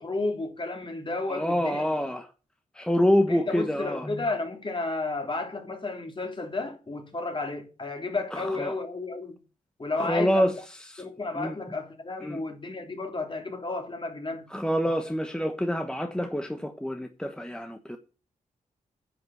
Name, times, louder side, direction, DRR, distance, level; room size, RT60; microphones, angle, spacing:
voice 1, 0.0-1.9 3.3-9.4 9.8-10.5 11.0-14.5, left 3 dB, 35° left, 3.2 m, -32 dB
voice 2, 1.3-2.3 2.7-4.2 8.3-8.7 10.0-11.1 11.3-11.6 12.2-12.4 14.5-18.0, equal, 5° left, 1.2 m, -27 dB
10.0 x 6.0 x 7.7 m
cardioid pair, 80°, 14 cm